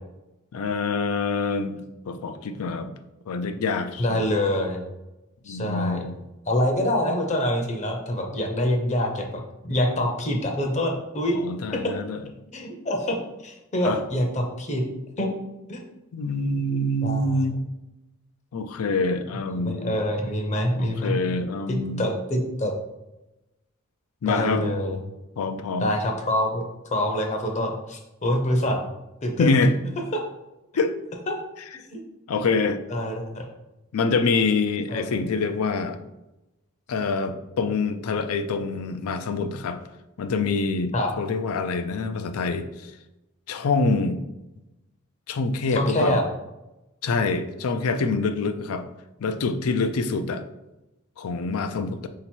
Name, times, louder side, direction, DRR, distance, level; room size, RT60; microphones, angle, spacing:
voice 1, 0.5-2.9 3.3-4.3 5.5-6.2 11.3-12.2 13.8-14.0 16.1-17.6 18.5-20.0 20.8-22.1 24.2-24.6 25.4-25.9 29.4-29.8 30.8-31.0 32.3-32.8 33.9-36.0 36.9-39.8 40.2-42.9 43.5-44.2 45.3-46.2 47.0-48.8 49.2-50.4 51.2-52.1, left 3 dB, 85° left, 8 dB, 0.4 m, -25 dB
voice 2, 4.0-4.8 5.5-6.0 6.5-11.4 12.5-13.2 13.4-14.8 15.2-15.4 15.7-15.8 17.0-17.4 19.5-21.2 21.7-22.7 24.2-25.0 25.8-26.6 26.9-28.9 29.2-29.5 30.1-30.2 31.3-31.4 31.9-32.0 32.9-33.4 34.9-35.0 40.9-41.1 45.7-46.2, left 1 dB, 35° left, 2 dB, 0.6 m, -25 dB
3.9 x 2.9 x 4.4 m, 0.98 s
head